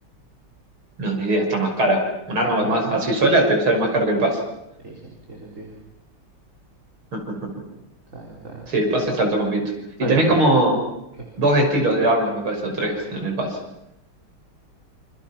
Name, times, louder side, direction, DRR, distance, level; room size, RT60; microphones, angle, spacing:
voice 1, 1.0-4.4 7.1-7.5 8.7-9.6 10.0-10.8 11.4-13.6, right 1 dB, 65° right, 2 dB, 6.7 m, -20 dB
voice 2, 4.8-5.8 8.1-8.7 10.0-10.4 11.1-11.3, right 2 dB, 35° right, -1 dB, 4.6 m, -33 dB
28.5 x 28.0 x 6.0 m, 0.84 s
omnidirectional pair, 2.4 m